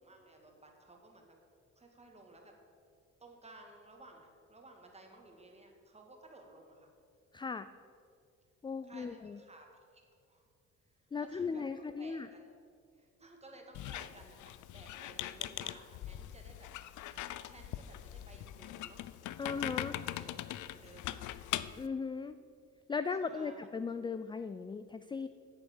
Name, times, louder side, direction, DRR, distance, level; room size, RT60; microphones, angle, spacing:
voice 1, 0.0-1.4 1.8-2.5 3.2-6.9 8.8-9.7 9.9-10.5 11.2-12.5 12.9-19.0 19.4-21.4 23.3-23.6, right 2 dB, 20° right, 1 dB, 2.1 m, -57 dB
voice 2, 7.3-7.7 8.6-9.4 11.1-12.3 19.4-20.0 21.8-22.4 22.9-25.3, left 5 dB, 15° left, 12 dB, 0.3 m, -37 dB
Squeak, 13.7-21.9, left 13 dB, 75° left, 0.5 m, -41 dB
8.4 x 8.0 x 7.2 m, 2.3 s
cardioid pair, 90°, 30 cm